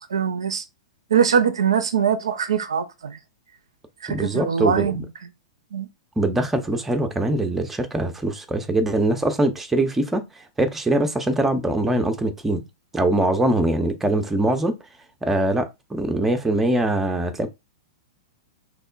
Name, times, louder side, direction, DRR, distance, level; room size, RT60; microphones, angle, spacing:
voice 1, 0.1-0.6 1.1-3.2 4.0-5.0 5.7-5.9, right 7 dB, 65° right, 0.4 m, -22 dB
voice 2, 4.1-4.9 6.2-10.2 10.6-12.6 12.9-14.8 15.2-17.5, right 1 dB, 10° right, 0.4 m, -22 dB
3.0 x 2.0 x 2.4 m
figure-of-eight pair, 100°, 3 cm